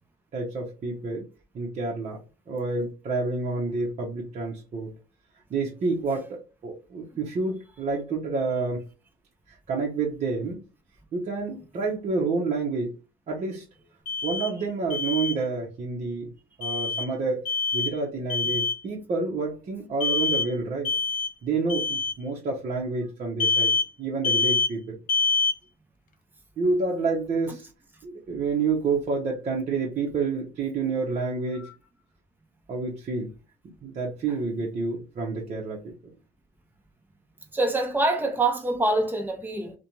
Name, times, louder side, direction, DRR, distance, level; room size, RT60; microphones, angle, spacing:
voice 1, 0.3-1.3 1.5-2.2 2.5-4.9 5.5-8.8 9.5-10.6 11.1-13.0 13.3-13.6 14.2-16.3 16.6-17.4 17.7-20.9 21.4-23.7 24.0-25.0 26.6-27.6 28.0-31.7 32.7-33.3 33.8-35.9, right 4 dB, 45° right, 0.8 m, -29 dB
Alarm, 14.1-14.5 14.9-15.4 16.6-17.1 17.5-17.9 18.3-18.8 20.0-20.5 20.9-21.3 21.7-22.1 23.4-23.9 24.2-24.7 25.1-25.6, left 4 dB, 55° left, 0.5 m, -25 dB
voice 2, 37.5-39.8, right 2 dB, 10° right, 0.7 m, -25 dB
2.5 x 2.2 x 2.9 m
cardioid pair, 110°, 17 cm